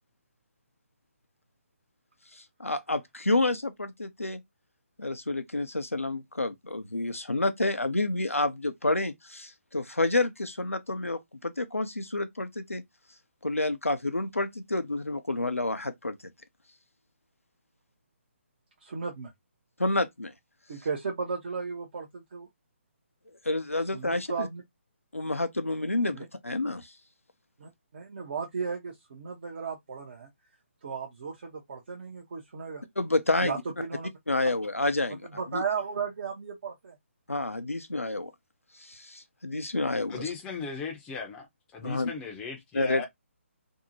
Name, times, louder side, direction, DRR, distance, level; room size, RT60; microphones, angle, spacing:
voice 1, 2.3-4.4 5.0-12.8 13.4-16.2 19.8-20.3 23.4-24.5 25.1-26.9 33.0-33.6 34.3-35.6 37.3-38.3 38.8-40.3 41.8-42.1 42.7-43.1, left 2 dB, 90° left, 0.5 m, -29 dB
voice 2, 18.8-19.3 20.7-22.5 23.9-24.6 26.1-26.3 27.6-30.3 30.8-32.8 33.4-34.1 35.1-36.9, right 5 dB, 45° right, 0.6 m, -35 dB
voice 3, 40.1-41.5 41.7-43.1, left 5 dB, 10° left, 0.5 m, -37 dB
2.6 x 2.1 x 2.6 m
figure-of-eight pair, 140°, 7 cm